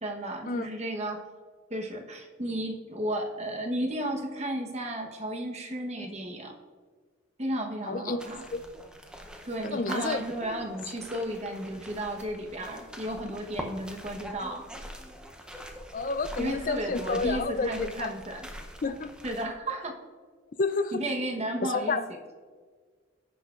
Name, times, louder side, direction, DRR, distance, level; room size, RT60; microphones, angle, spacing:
voice 1, 0.0-1.2 1.7-6.5 7.4-8.4 9.4-14.6 16.4-18.6 19.2-19.9 20.9-22.0, right 1 dB, 35° right, 2 dB, 1.1 m, -33 dB
voice 2, 7.9-8.6 9.6-10.2 15.9-18.1 18.8-19.1 20.6-21.0 21.6-22.0, left 3 dB, 45° left, 11 dB, 0.5 m, -30 dB
sound 1, 8.2-19.4, equal, 5° right, 0.7 m, -43 dB
15.5 x 5.9 x 2.5 m, 1.6 s
head